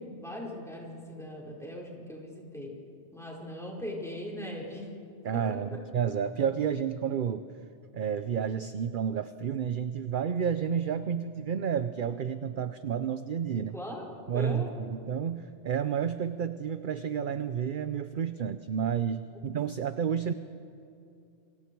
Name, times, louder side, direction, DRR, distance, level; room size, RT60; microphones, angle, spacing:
voice 1, 0.0-2.7 3.1-4.9 5.3-5.4 13.7-14.7, left 1 dB, ahead, -3 dB, 4.6 m, -39 dB
voice 2, 5.2-7.4 7.9-13.8 14.3-20.3, right 8 dB, 50° right, 11 dB, 0.7 m, -30 dB
28.5 x 25.0 x 4.6 m, 2.5 s
omnidirectional pair, 1.2 m